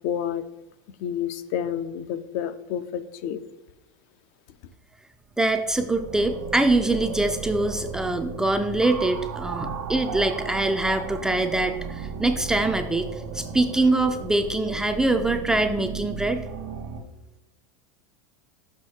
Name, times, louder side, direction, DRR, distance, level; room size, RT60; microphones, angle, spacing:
voice 1, 0.0-0.4 1.0-3.4, left 9 dB, 55° left, 13 dB, 0.5 m, -29 dB
voice 2, 5.4-16.4, right 2 dB, 5° right, 6 dB, 0.3 m, -24 dB
sound 1, 5.5-17.0, right 5 dB, 85° right, 1.2 m, -35 dB
6.3 x 5.1 x 4.3 m, 0.92 s
supercardioid pair, 150°, 10 cm